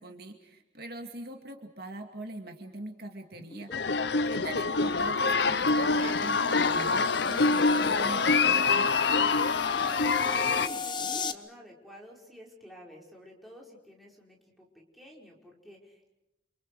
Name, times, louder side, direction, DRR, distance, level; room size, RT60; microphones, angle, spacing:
voice 1, 0.0-3.7 4.2-9.0, right 2 dB, 55° right, 4 dB, 2.3 m, -42 dB
sound 1, 3.3-11.3, left 4 dB, 25° left, 1.1 m, -39 dB
sound 2, 3.7-10.7, left 4 dB, 65° left, 0.8 m, -25 dB
voice 2, 9.5-16.1, equal, ahead, -2 dB, 5.2 m, -50 dB
29.5 x 27.0 x 4.9 m, 0.89 s
head